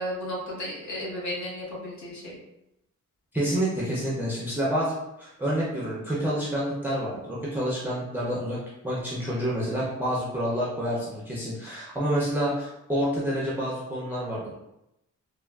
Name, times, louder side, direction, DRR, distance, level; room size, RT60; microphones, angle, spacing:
voice 1, 0.0-2.4, equal, 70° left, -5 dB, 1.2 m, -34 dB
voice 2, 3.3-8.6 8.8-14.5, equal, 5° right, -7 dB, 0.4 m, -28 dB
3.3 x 2.2 x 2.2 m, 0.87 s
wide cardioid pair, 165°, 29 cm